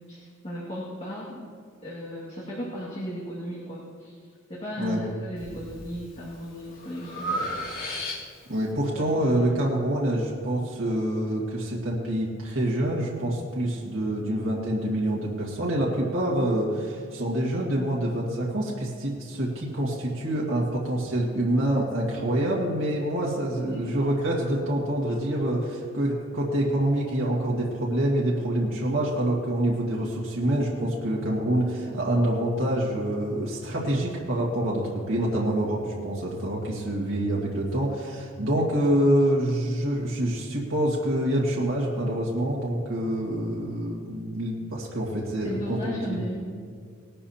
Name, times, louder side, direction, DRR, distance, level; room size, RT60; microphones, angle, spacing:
voice 1, 0.1-1.4 1.8-4.1 4.5-7.4 8.9-9.5 23.4-23.9 45.4-46.5, equal, 30° left, -7 dB, 2.1 m, -36 dB
Breathing, 5.4-5.9 6.3-8.6, equal, 45° left, 2.1 m, -33 dB
voice 2, 8.5-46.2, right 1 dB, 70° right, -4 dB, 1.9 m, -26 dB
19.0 x 12.0 x 2.9 m, 2.1 s
head